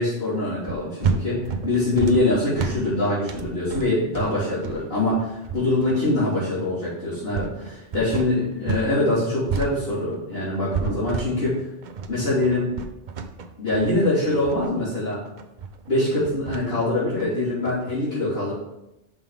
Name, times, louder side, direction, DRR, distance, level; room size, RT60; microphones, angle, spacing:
voice 1, 0.0-1.4 1.6-11.5 12.1-12.7 13.6-15.2 15.9-18.5, left 2 dB, 60° left, -14 dB, 3.1 m, -24 dB
sound 1, 0.6-8.9 9.2-17.9, right 5 dB, 50° right, 0.6 m, -31 dB
5.6 x 5.5 x 4.7 m, 0.90 s
omnidirectional pair, 1.2 m